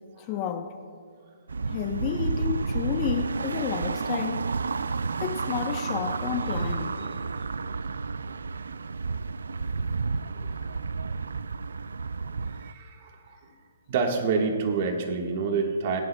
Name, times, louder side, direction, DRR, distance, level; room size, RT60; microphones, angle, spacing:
voice 1, 0.2-0.7 1.7-4.4 5.2-7.1, left 9 dB, 30° left, 6 dB, 0.8 m, -31 dB
sound 1, 1.5-12.7, right 4 dB, 85° right, 0.4 m, -31 dB
voice 2, 12.5-13.5 13.9-16.0, right 4 dB, 45° right, 2 dB, 1.5 m, -28 dB
23.0 x 9.6 x 2.3 m, 2.1 s
hypercardioid pair, 150°, 0 cm